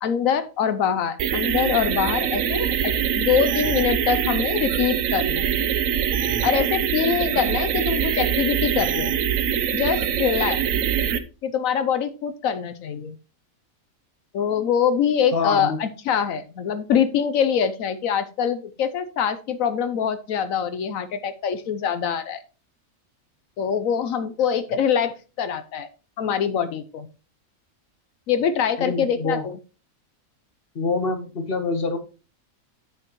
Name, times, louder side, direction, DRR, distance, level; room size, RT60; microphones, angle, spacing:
voice 1, 0.0-5.5 6.4-9.2 9.7-10.6 11.4-13.2 14.3-22.4 23.6-25.9 26.2-27.1 28.3-29.6, left 7 dB, 80° left, 12 dB, 1.1 m, -24 dB
sound 1, 1.2-11.2, right 9 dB, 75° right, 1.1 m, -23 dB
voice 2, 15.3-15.8 28.8-29.5 30.7-32.0, left 4 dB, 45° left, 8 dB, 1.2 m, -25 dB
8.8 x 8.2 x 3.0 m, 0.33 s
omnidirectional pair, 1.4 m